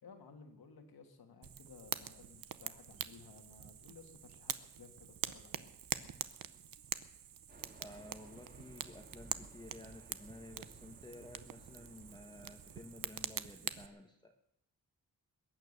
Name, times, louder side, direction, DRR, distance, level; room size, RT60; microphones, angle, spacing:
voice 1, 0.0-5.7, left 5 dB, 90° left, 5 dB, 2.1 m, -57 dB
Fire, 1.4-13.9, right 9 dB, 65° right, 0.8 m, -45 dB
Fixed-wing aircraft airplane, 7.5-13.5, right 2 dB, 25° right, 2.5 m, -59 dB
voice 2, 7.8-14.3, left 1 dB, 10° left, 4 dB, 1.1 m, -53 dB
21.5 x 9.3 x 6.7 m, 0.81 s
wide cardioid pair, 115°, 36 cm